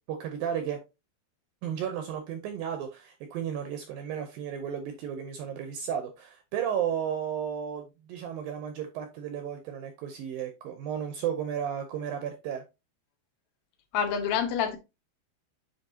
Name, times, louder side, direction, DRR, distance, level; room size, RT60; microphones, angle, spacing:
voice 1, 0.1-0.8 1.6-12.6, right 8 dB, 75° right, 2.2 m, -33 dB
voice 2, 13.9-14.8, left 7 dB, 70° left, 1.7 m, -27 dB
8.0 x 5.3 x 2.8 m
omnidirectional pair, 4.8 m